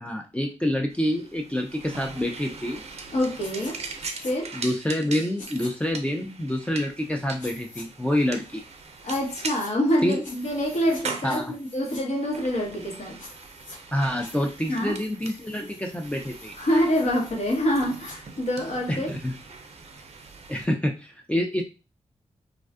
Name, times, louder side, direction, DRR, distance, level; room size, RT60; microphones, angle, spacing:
voice 1, 0.0-2.8 4.5-8.6 10.0-10.2 11.2-11.5 13.9-16.5 18.9-19.3 20.5-21.6, left 1 dB, 10° left, 1 dB, 0.4 m, -27 dB
sound 1, 0.9-20.6, right 4 dB, 55° right, 0.5 m, -41 dB
voice 2, 3.1-3.8 4.2-4.5 9.0-13.2 14.7-15.0 16.6-19.1, equal, 60° left, 1 dB, 0.9 m, -26 dB
sound 2, 3.4-3.7 4.0-4.3 5.4-5.7 7.4-7.8 9.1-9.7 10.2-11.0 11.3-12.0 13.2-13.8 14.2-18.2, left 2 dB, 85° left, 0.7 m, -46 dB
2.5 x 2.3 x 2.3 m, 0.31 s
supercardioid pair, 40°, 13 cm